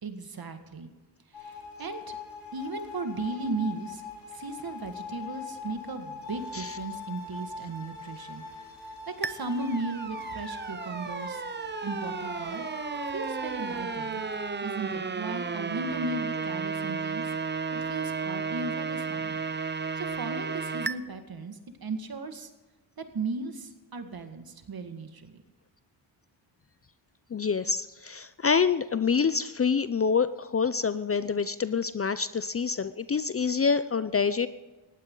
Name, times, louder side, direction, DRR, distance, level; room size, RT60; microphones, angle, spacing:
voice 1, 0.0-0.9 1.3-2.2 2.5-4.0 4.3-8.4 8.8-11.4 11.8-12.6 13.1-14.2 14.6-17.3 17.7-19.3 20.0-22.5 23.0-25.4, right 3 dB, 50° right, 7 dB, 2.1 m, -36 dB
sound 1, 1.3-14.5, left 2 dB, 80° left, 4.0 m, -41 dB
sound 2, 9.2-20.9, right 5 dB, 25° right, 0.8 m, -33 dB
voice 2, 27.3-34.5, left 5 dB, 30° left, 14 dB, 0.6 m, -26 dB
19.0 x 15.5 x 3.9 m, 1.2 s
cardioid pair, 65°, 46 cm